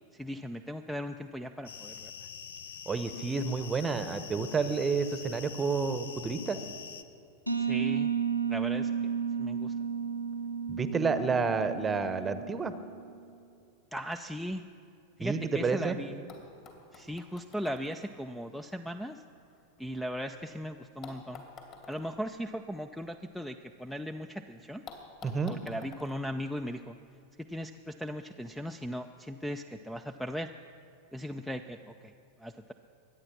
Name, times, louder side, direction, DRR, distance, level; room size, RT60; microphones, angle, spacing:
voice 1, 0.1-2.3 7.6-8.1 8.5-8.9 9.4-9.7 13.9-14.6 15.2-16.3 16.9-19.2 19.8-21.4 21.9-24.8 25.5-27.0 27.5-30.5 31.1-32.1 32.4-32.7, equal, 5° left, 9 dB, 0.5 m, -38 dB
sound 1, 1.7-7.0, left 7 dB, 65° left, 0.7 m, -45 dB
voice 2, 2.9-6.6 10.7-12.7 15.2-16.0 25.2-25.5, right 4 dB, 15° right, 11 dB, 0.9 m, -30 dB
sound 2, 7.5-13.0, right 7 dB, 90° right, 0.9 m, -32 dB
sound 3, 16.3-20.4 21.0-24.0 24.3-24.4 24.9-27.2 28.2-28.3, left 5 dB, 35° left, 2.6 m, -52 dB
23.0 x 9.6 x 6.1 m, 2.5 s
figure-of-eight pair, 90°, 0 cm